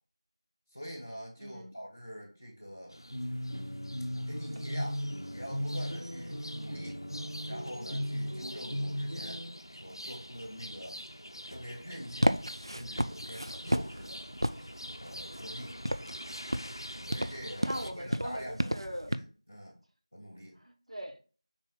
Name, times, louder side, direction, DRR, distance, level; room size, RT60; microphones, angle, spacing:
voice 1, 0.7-3.0 4.1-5.0 5.3-7.0 7.4-9.4 9.7-11.0 11.4-12.4 12.7-14.2 15.0-15.8 17.1-18.7 19.1-19.8 20.1-20.6, equal, 10° right, 0.7 m, -44 dB
voice 2, 1.4-1.8 17.0-17.2 17.6-19.1 20.6-21.2, equal, 85° right, 0.9 m, -41 dB
sound 1, 2.9-17.9, equal, 45° left, 0.5 m, -46 dB
sound 2, 3.1-9.5, equal, 30° right, 1.4 m, -37 dB
sound 3, 12.1-19.2, equal, 50° right, 0.3 m, -33 dB
5.3 x 4.0 x 2.2 m
figure-of-eight pair, 180°, 3 cm